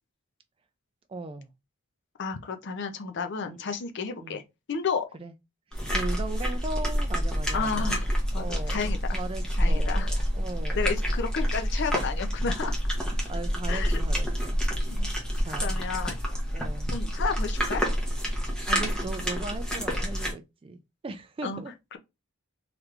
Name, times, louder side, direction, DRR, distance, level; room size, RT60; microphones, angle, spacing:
voice 1, 1.1-1.5 3.5-3.6 4.2-4.4 5.2-5.3 5.9-8.0 8.3-10.9 13.3-14.6 15.4-15.8 16.5-16.9 18.7-21.7, right 3 dB, 25° right, 0.3 m, -38 dB
voice 2, 2.2-4.4 4.7-5.1 7.5-8.1 8.3-9.2 9.6-10.1 10.7-12.7 13.7-14.0 14.9-16.2 16.9-17.8 21.4-21.6 21.9-22.0, left 5 dB, 55° left, 0.5 m, -32 dB
sound 1, 5.7-20.3, equal, 5° left, 0.8 m, -28 dB
3.3 x 3.0 x 2.4 m
head